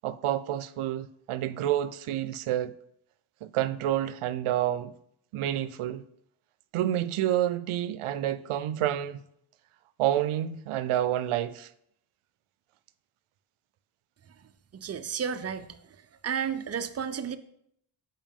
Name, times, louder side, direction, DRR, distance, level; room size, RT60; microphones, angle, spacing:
voice 1, 0.0-2.7 3.4-4.9 5.3-6.0 6.7-9.2 10.0-11.7, right 12 dB, 80° right, 0.6 m, -29 dB
voice 2, 14.7-15.7 16.2-17.4, right 7 dB, 35° right, 0.4 m, -32 dB
7.1 x 5.4 x 3.6 m
wide cardioid pair, 115°, 49 cm